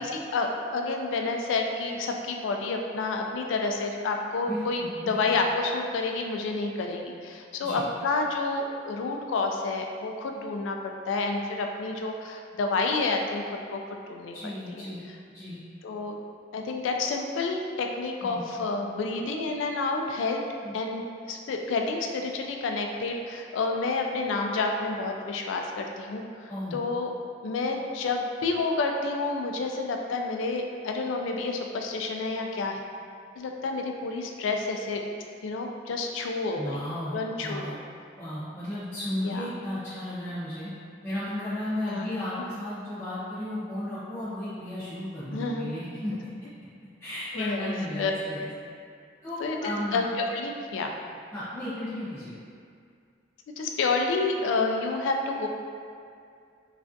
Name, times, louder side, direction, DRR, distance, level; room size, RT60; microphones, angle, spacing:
voice 1, 0.0-14.4 14.8-14.9 15.8-16.2 16.5-20.4 20.7-27.1 27.4-32.8 33.4-35.0 35.4-36.8 37.1-37.8 39.2-39.5 41.9-42.1 45.3-45.7 47.3-47.7 48.0-48.1 49.4-50.9 53.6-55.5, left 3 dB, 85° left, 3 dB, 0.3 m, -29 dB
voice 2, 4.4-5.1 7.6-7.8 14.3-15.0 15.3-15.6 18.2-18.5 20.6-20.7 26.5-26.8 36.6-37.7 38.2-40.7 41.0-46.1 47.0-48.5 49.2-50.0 51.3-52.3, left 1 dB, 15° left, -14 dB, 0.5 m, -34 dB
3.3 x 2.3 x 2.5 m, 2.3 s
head